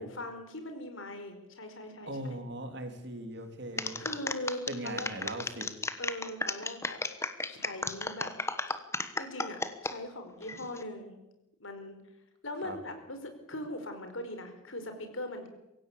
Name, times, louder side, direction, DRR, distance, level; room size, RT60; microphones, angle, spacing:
voice 1, 0.0-2.4 4.0-5.1 6.0-7.0 7.5-8.3 9.2-11.1 11.6-12.0 12.4-15.5, left 1 dB, 75° left, 6 dB, 4.9 m, -40 dB
voice 2, 2.1-4.0 4.7-5.7 12.6-12.8, right 1 dB, 55° right, 6 dB, 3.5 m, -39 dB
sound 1, 3.8-9.9 10.4-10.8, left 3 dB, 15° left, 1.3 m, -34 dB
24.0 x 16.5 x 8.6 m, 0.91 s
head